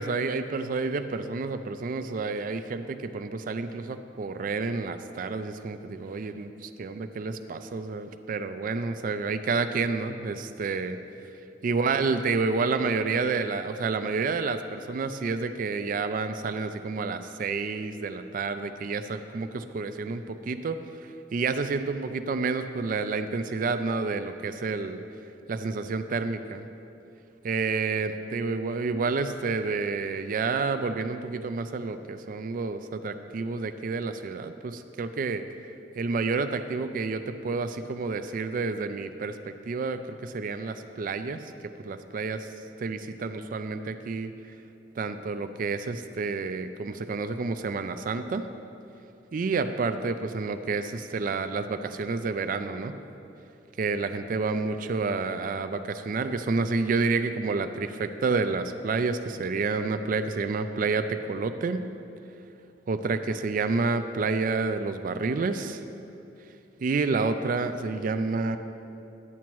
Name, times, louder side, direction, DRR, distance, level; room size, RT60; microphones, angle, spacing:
voice 1, 0.0-11.0 11.6-20.8 21.3-25.0 25.5-26.6 27.4-35.4 36.0-41.4 41.8-42.5 42.8-44.3 45.0-48.5 49.3-53.0 53.8-61.8 62.9-65.8 66.8-68.6, right 4 dB, 50° right, 10 dB, 0.4 m, -29 dB
11.0 x 8.3 x 3.0 m, 2.8 s
head